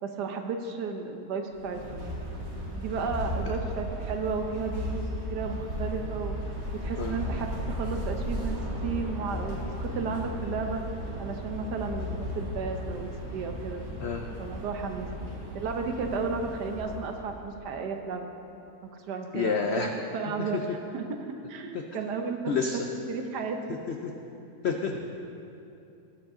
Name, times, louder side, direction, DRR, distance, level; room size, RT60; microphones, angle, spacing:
voice 1, 0.0-2.0 2.7-5.0 5.3-6.4 6.7-10.8 11.2-13.8 14.4-18.3 18.8-19.8 20.1-22.5 23.1-23.8 24.9-25.0, right 5 dB, 75° right, 5 dB, 1.4 m, -33 dB
sound 1, 1.5-17.3, equal, 40° right, 1.7 m, -35 dB
voice 2, 19.3-19.9 20.4-20.5 21.7-21.8 22.5-22.8 24.0-24.1 24.6-25.0, left 5 dB, 75° left, 3 dB, 0.6 m, -28 dB
18.0 x 7.2 x 3.8 m, 2.8 s
omnidirectional pair, 1.8 m